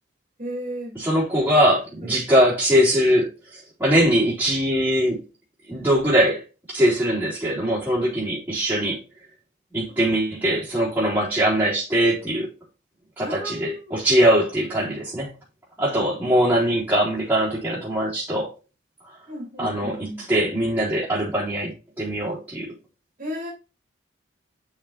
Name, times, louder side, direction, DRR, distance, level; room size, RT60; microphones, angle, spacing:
voice 1, 0.4-1.0 2.0-2.1 9.9-10.1 13.2-14.0 15.8-15.9 19.3-20.2 23.2-23.5, equal, 40° right, 3.2 m, -34 dB
voice 2, 1.0-3.3 3.8-5.2 5.7-6.4 6.7-9.0 9.7-12.5 13.2-15.3 15.8-18.5 19.6-20.0 20.3-22.7, equal, 10° right, 4.0 m, -21 dB
6.9 x 5.6 x 4.3 m
head